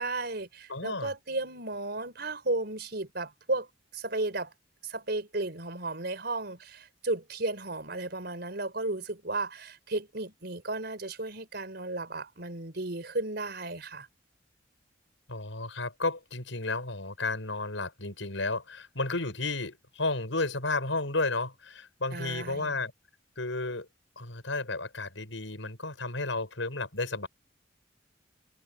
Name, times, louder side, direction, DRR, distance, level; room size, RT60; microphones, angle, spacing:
voice 1, 0.0-3.7 3.9-4.5 4.8-14.1 22.1-22.8, right 2 dB, 55° right, 4.7 m, -34 dB
voice 2, 0.7-1.1 15.3-22.9 23.4-23.9 24.2-27.3, left 3 dB, 85° left, 6.6 m, -32 dB
head